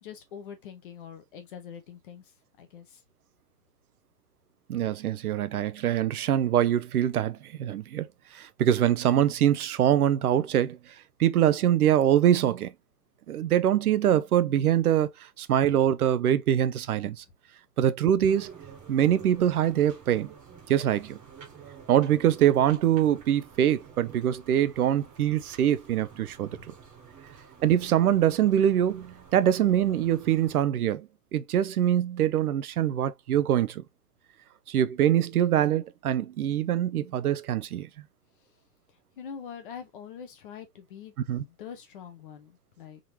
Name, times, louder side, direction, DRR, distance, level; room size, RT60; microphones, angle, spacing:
voice 1, 0.0-2.2 2.6-3.0 26.5-26.7 39.2-41.1 41.4-43.0, left 7 dB, 35° left, 0.8 m, -44 dB
voice 2, 4.7-8.1 8.3-10.8 11.2-12.7 13.3-15.1 15.4-17.2 17.8-18.5 18.9-20.3 20.7-21.2 21.9-26.5 27.6-33.8 34.7-37.9 41.3-41.4, right 10 dB, 65° right, 0.6 m, -24 dB
sound 1, 18.3-30.6, right 6 dB, 15° right, 1.2 m, -50 dB
3.8 x 3.0 x 2.9 m
hypercardioid pair, 150°, 48 cm